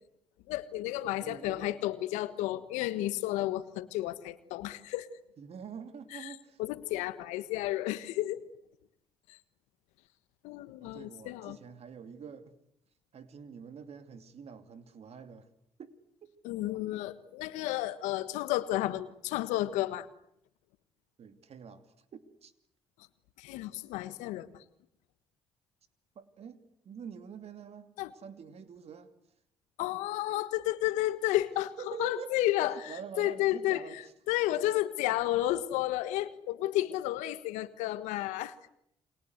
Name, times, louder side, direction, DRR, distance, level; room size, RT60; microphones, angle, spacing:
voice 1, 0.5-5.1 6.1-6.3 6.6-8.4 9.3-9.4 10.4-11.6 16.4-20.1 23.4-24.6 28.0-28.1 29.8-33.8 34.3-38.6, left 15 dB, 85° left, 1.4 m, -32 dB
voice 2, 1.2-1.8 5.4-6.6 10.8-12.6 13.1-15.5 15.8-15.9 16.2-16.3 21.2-22.5 26.1-29.1 31.8-32.5 32.9-34.1, right 7 dB, 60° right, 2.7 m, -46 dB
29.0 x 24.5 x 8.1 m
hypercardioid pair, 50°, 12 cm